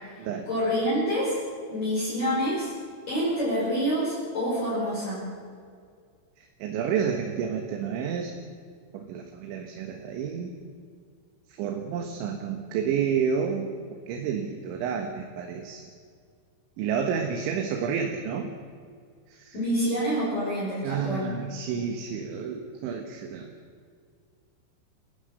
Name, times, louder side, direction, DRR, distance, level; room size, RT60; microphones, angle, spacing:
voice 1, 0.5-1.4 1.7-2.7 3.1-5.2 19.5-21.3, equal, 40° left, -8 dB, 7.0 m, -27 dB
voice 2, 6.6-8.3 8.9-10.5 11.6-13.7 14.1-15.8 16.8-18.5 19.3-19.5 20.8-23.5, right 7 dB, 75° right, 3 dB, 3.6 m, -30 dB
28.0 x 16.0 x 6.7 m, 2.1 s
omnidirectional pair, 5.6 m